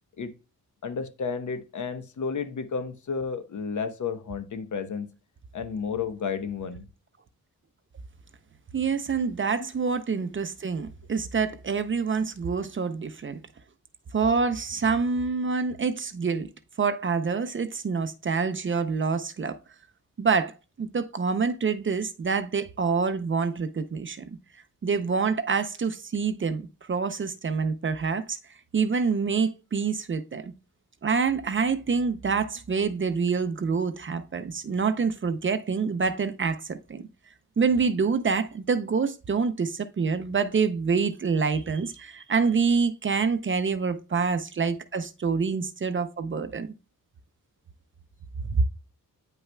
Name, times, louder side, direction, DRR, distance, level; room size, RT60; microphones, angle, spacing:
voice 1, 0.8-5.1 5.5-6.9 9.1-9.3, left 5 dB, 60° left, 1.0 m, -32 dB
voice 2, 8.7-13.4 14.1-16.5 16.8-19.6 20.2-24.3 24.8-28.4 28.7-30.5 31.0-37.0 37.6-46.7 48.4-48.6, right 5 dB, 35° right, 0.6 m, -26 dB
9.2 x 5.6 x 2.2 m
wide cardioid pair, 115°, 35 cm